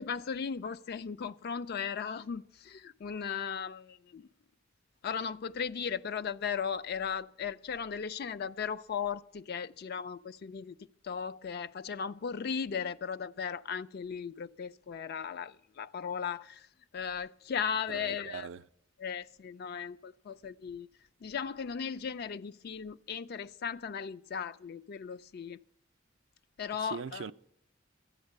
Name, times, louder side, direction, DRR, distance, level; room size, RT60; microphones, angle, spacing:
voice 1, 0.0-4.3 5.0-16.7 16.9-18.5 19.0-20.9 21.2-25.6 26.6-27.3, left 6 dB, 50° left, 0.4 m, -37 dB
voice 2, 17.9-18.6 26.8-27.3, right 6 dB, 70° right, 0.4 m, -41 dB
13.0 x 8.7 x 6.5 m
head